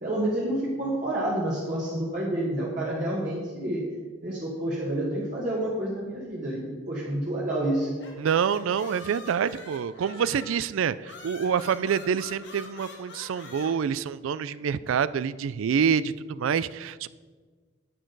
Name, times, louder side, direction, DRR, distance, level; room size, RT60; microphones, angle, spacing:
voice 1, 0.0-3.8 4.2-7.9, right 1 dB, 40° right, -6 dB, 1.5 m, -29 dB
sound 1, 7.8-10.6 11.0-13.7, left 2 dB, 55° left, 1.7 m, -44 dB
voice 2, 8.2-17.1, right 7 dB, 75° right, 17 dB, 0.3 m, -27 dB
11.0 x 8.6 x 3.9 m, 1.4 s
head